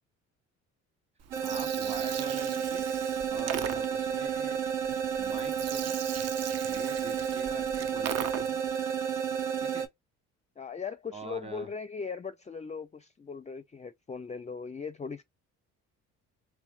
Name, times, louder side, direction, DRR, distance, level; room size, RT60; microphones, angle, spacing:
Gurgling, 1.2-8.7, right 8 dB, 50° right, 0.6 m, -40 dB
sound 1, 1.3-9.9, right 8 dB, 85° right, 1.1 m, -31 dB
voice 1, 1.4-2.9 3.3-4.6 5.2-6.0 6.7-8.6 9.6-9.9 11.1-11.7, right 3 dB, 20° right, 1.2 m, -44 dB
voice 2, 10.6-15.2, left 5 dB, 20° left, 0.5 m, -39 dB
3.2 x 3.1 x 2.3 m
supercardioid pair, 75°, 34 cm